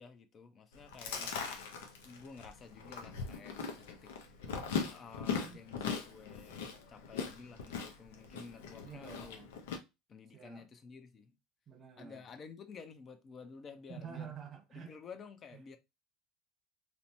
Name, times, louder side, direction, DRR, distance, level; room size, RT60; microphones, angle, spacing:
voice 1, 0.0-1.5 2.0-4.1 4.7-9.4 10.1-11.4 12.0-14.3 14.7-15.8, left 5 dB, 40° left, 0.5 m, -52 dB
Chewing mastication, 0.7-9.8, left 6 dB, 85° left, 0.5 m, -40 dB
voice 2, 8.8-9.5 10.3-10.7 11.7-12.2 13.9-14.9, right 7 dB, 40° right, 0.6 m, -48 dB
2.8 x 2.1 x 2.7 m
hypercardioid pair, 90°, 0 cm